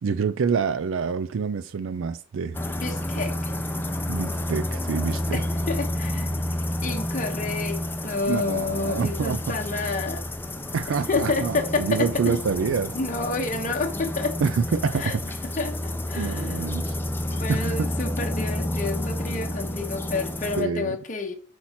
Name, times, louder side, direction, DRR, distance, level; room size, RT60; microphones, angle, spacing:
voice 1, 0.0-2.6 4.1-5.4 8.3-9.6 10.7-12.9 14.4-15.2 16.1-16.9 17.5-17.9 20.6-21.0, right 5 dB, 70° right, 0.4 m, -27 dB
sound 1, 2.5-20.6, left 1 dB, 10° left, 0.5 m, -30 dB
voice 2, 2.8-3.5 5.3-10.2 11.1-12.4 12.9-14.4 14.9-15.2 15.6-16.6 17.3-21.3, left 3 dB, 40° left, 0.8 m, -29 dB
4.5 x 4.2 x 5.7 m
head